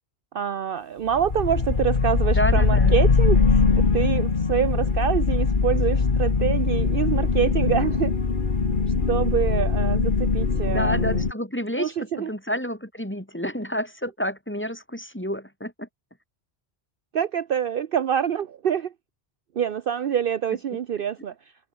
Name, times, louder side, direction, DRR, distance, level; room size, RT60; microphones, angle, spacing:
voice 1, 0.3-8.2 9.1-11.3 11.7-12.3 17.1-18.9 19.5-21.3, right 9 dB, 55° right, 0.8 m, -26 dB
sound 1, 1.1-11.3, left 4 dB, 45° left, 1.6 m, -21 dB
voice 2, 2.3-3.0 10.7-15.9, equal, 10° left, 4.0 m, -29 dB
omnidirectional pair, 1.1 m